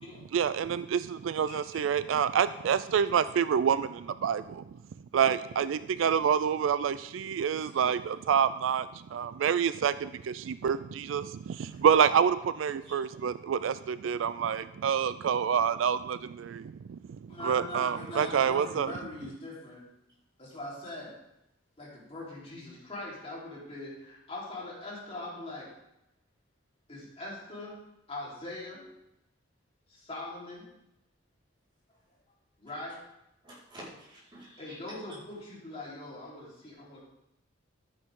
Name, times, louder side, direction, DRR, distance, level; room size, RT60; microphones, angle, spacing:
voice 1, 0.3-4.6 5.1-17.0 17.4-18.9, right 7 dB, 70° right, 14 dB, 0.3 m, -27 dB
voice 2, 1.4-1.8 7.6-7.7 12.8-12.9 33.4-34.8, right 1 dB, 25° right, -8 dB, 4.7 m, -49 dB
voice 3, 17.3-19.8 20.4-21.1 21.8-25.7 26.9-28.9 29.9-30.7 32.6-33.0 34.6-37.0, left 1 dB, 30° left, -6 dB, 3.8 m, -41 dB
12.5 x 9.7 x 3.7 m, 0.85 s
head